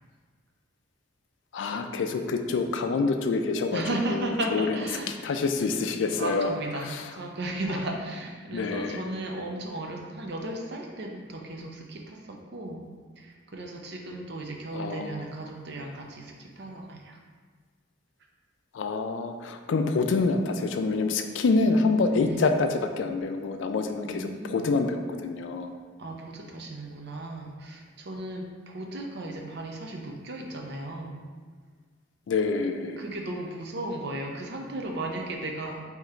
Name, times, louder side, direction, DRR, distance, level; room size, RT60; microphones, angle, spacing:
voice 1, 1.5-3.8 4.5-4.7 5.2-6.5 8.5-9.0 14.7-15.2 18.7-25.7 32.3-33.0, left 3 dB, 75° left, 6 dB, 0.4 m, -26 dB
voice 2, 3.7-5.2 6.1-12.9 13.2-17.2 22.2-22.6 24.1-24.7 26.0-31.2 33.0-35.8, right 1 dB, 60° right, 1 dB, 0.6 m, -35 dB
3.7 x 2.9 x 4.3 m, 1.5 s
head